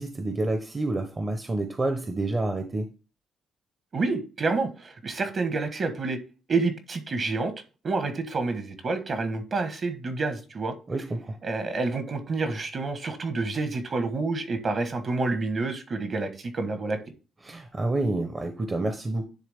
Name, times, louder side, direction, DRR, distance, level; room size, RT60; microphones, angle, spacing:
voice 1, 0.0-2.9 10.9-11.4 17.4-19.2, right 2 dB, 30° right, 0.9 m, -28 dB
voice 2, 3.9-6.2 6.5-7.5 7.8-10.7 11.4-17.0, right 3 dB, 45° right, 1.4 m, -28 dB
10.0 x 3.5 x 3.6 m
cardioid pair, 90°, 0 cm